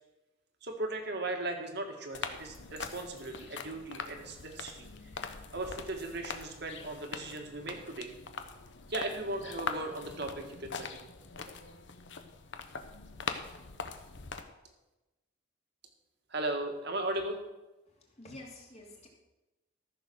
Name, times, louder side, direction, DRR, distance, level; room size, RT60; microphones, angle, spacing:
voice 1, 0.6-4.9 5.2-8.1 8.9-11.1 11.5-11.6 16.3-17.4, right 2 dB, 55° right, 4 dB, 1.9 m, -37 dB
sound 1, 2.1-14.4, left 5 dB, 60° left, 1.0 m, -42 dB
voice 2, 17.9-19.1, left 1 dB, 35° left, -1 dB, 2.8 m, -49 dB
14.0 x 6.8 x 6.4 m, 1.0 s
head